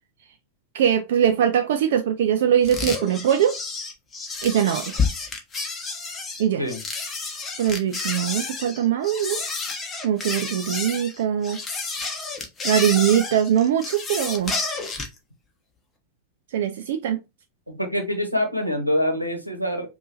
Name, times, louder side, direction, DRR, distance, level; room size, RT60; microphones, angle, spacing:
voice 1, 0.7-3.5 4.4-5.0 6.4-6.6 7.6-9.4 10.0-11.6 12.6-14.6 16.5-17.2, right 9 dB, 55° right, 0.4 m, -22 dB
sound 1, 2.6-15.2, left 4 dB, 20° left, 1.1 m, -30 dB
voice 2, 17.7-19.9, left 1 dB, 90° right, 1.0 m, -25 dB
5.3 x 2.6 x 2.8 m
figure-of-eight pair, 90°, 0 cm